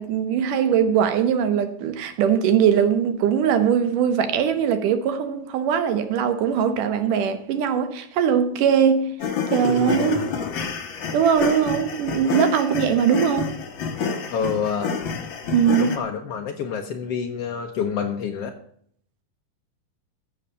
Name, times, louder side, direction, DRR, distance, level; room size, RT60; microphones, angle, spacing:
voice 1, 0.0-9.1 9.5-10.3 11.1-13.6 15.5-15.9, right 8 dB, 70° right, 2.5 m, -21 dB
sound 1, 9.2-16.0, left 5 dB, 60° left, 1.3 m, -28 dB
voice 2, 14.3-14.9 15.8-18.5, left 7 dB, 80° left, 1.4 m, -27 dB
14.0 x 6.6 x 7.1 m
omnidirectional pair, 4.2 m